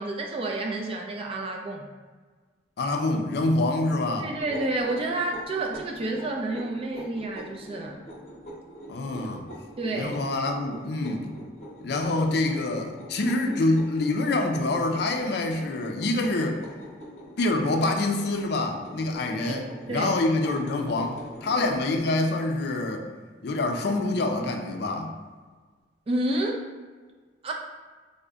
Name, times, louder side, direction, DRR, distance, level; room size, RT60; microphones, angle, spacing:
voice 1, 0.0-1.9 4.2-8.0 9.8-10.2 19.4-19.6 19.9-20.1 26.1-26.5 27.4-27.5, right 2 dB, 30° right, 1 dB, 0.3 m, -29 dB
voice 2, 2.8-4.3 8.9-9.5 9.9-11.2 11.8-16.6 17.4-23.1 23.4-25.1, left 2 dB, 60° left, 4 dB, 0.4 m, -26 dB
sound 1, 4.4-21.8, equal, 35° left, 0.8 m, -44 dB
3.7 x 2.1 x 3.4 m, 1.4 s
head